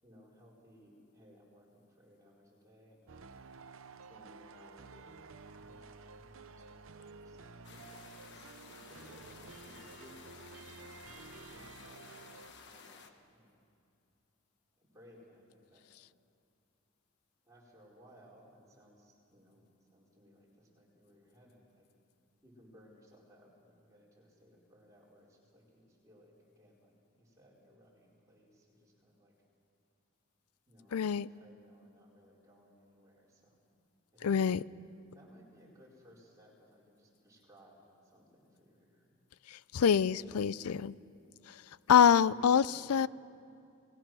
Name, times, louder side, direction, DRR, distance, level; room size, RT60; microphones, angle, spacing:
voice 1, 0.0-3.3 4.1-5.1 5.5-7.4 7.7-8.5 8.8-10.3 11.1-13.1 13.3-13.6 14.7-15.9 17.4-21.9 22.4-29.3 30.7-33.6 34.1-34.4 35.1-39.1 40.2-40.7 42.2-43.1, equal, 15° right, -5 dB, 4.4 m, -61 dB
sound 1, 3.1-12.5, right 4 dB, 65° right, 0.8 m, -52 dB
sound 2, 7.6-13.1, left 5 dB, 50° left, 1.2 m, -54 dB
voice 2, 30.9-31.3 34.2-34.6 39.5-40.9 41.5-42.6 42.9-43.1, left 7 dB, 85° left, 20 dB, 0.4 m, -26 dB
30.0 x 19.0 x 6.2 m, 2.5 s
head